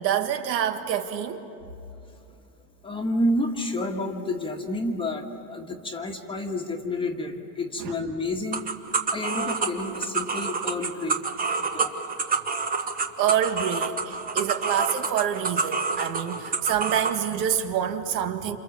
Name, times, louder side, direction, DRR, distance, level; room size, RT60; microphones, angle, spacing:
voice 1, 0.0-1.5 7.8-7.9 13.2-18.6, right 9 dB, 85° right, 7 dB, 1.9 m, -27 dB
voice 2, 2.8-8.7 9.1-11.2 11.7-11.9, left 1 dB, 10° left, 2 dB, 1.5 m, -29 dB
sound 1, 8.5-17.2, right 4 dB, 15° right, 1.2 m, -28 dB
28.0 x 28.0 x 7.2 m, 2.8 s
supercardioid pair, 145°, 49 cm